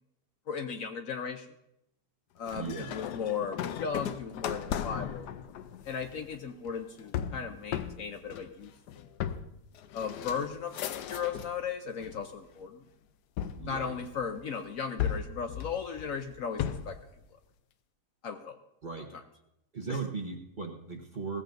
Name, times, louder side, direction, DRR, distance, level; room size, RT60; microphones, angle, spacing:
voice 1, 0.5-1.5 2.4-5.3 5.8-9.2 9.9-12.8 13.6-17.0 18.2-18.6 19.9-20.0, left 6 dB, 65° left, 6 dB, 1.0 m, -36 dB
sound 1, 2.5-11.6 12.0-12.6 13.4-14.4 15.0-17.0, left 9 dB, 80° left, 1.2 m, -37 dB
voice 2, 2.6-3.0 13.5-14.0 18.8-19.1 19.7-21.4, right 5 dB, 35° right, 3 dB, 1.0 m, -37 dB
17.0 x 14.5 x 2.6 m, 0.84 s
omnidirectional pair, 1.8 m